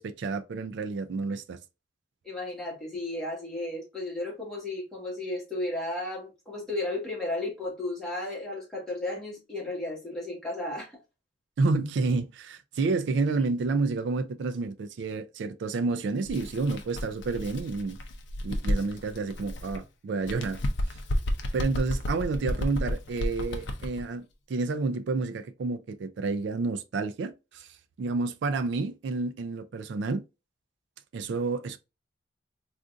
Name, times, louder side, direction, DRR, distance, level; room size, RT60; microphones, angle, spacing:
voice 1, 0.0-1.6 11.6-18.0 18.4-20.6 21.5-24.2 24.5-27.7 28.0-30.2 31.1-31.8, right 3 dB, 60° right, 0.3 m, -29 dB
voice 2, 2.2-10.9, left 2 dB, 5° left, 1.3 m, -34 dB
Bird, 16.2-19.8 20.2-24.0, left 1 dB, 60° left, 0.5 m, -32 dB
3.7 x 2.5 x 2.4 m
head